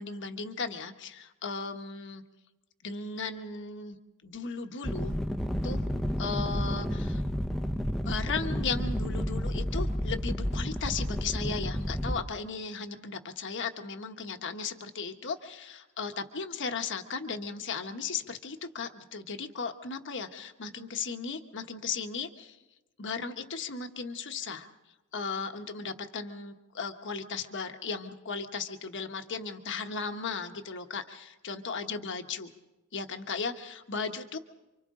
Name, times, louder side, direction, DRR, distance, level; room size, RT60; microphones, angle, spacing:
voice 1, 0.0-2.2 2.8-4.0 4.2-5.1 5.6-5.8 6.2-7.2 8.0-22.6 23.0-24.7 25.1-32.5 32.9-34.4, left 5 dB, 55° left, 6 dB, 1.2 m, -36 dB
sound 1, 4.8-12.2, equal, ahead, 0.7 m, -31 dB
29.0 x 25.0 x 3.8 m, 1.0 s
head